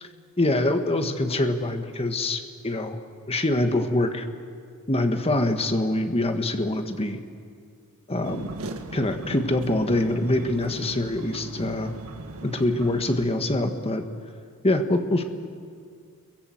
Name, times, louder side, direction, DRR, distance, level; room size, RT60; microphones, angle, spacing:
voice 1, 0.4-3.0 3.3-4.3 4.9-7.2 8.1-8.5 8.9-11.9 12.4-14.0 14.6-15.2, left 1 dB, 25° left, 6 dB, 1.6 m, -24 dB
sound 1, 8.2-13.3, right 1 dB, 70° right, 1.9 m, -38 dB
29.0 x 23.0 x 7.9 m, 2.2 s
head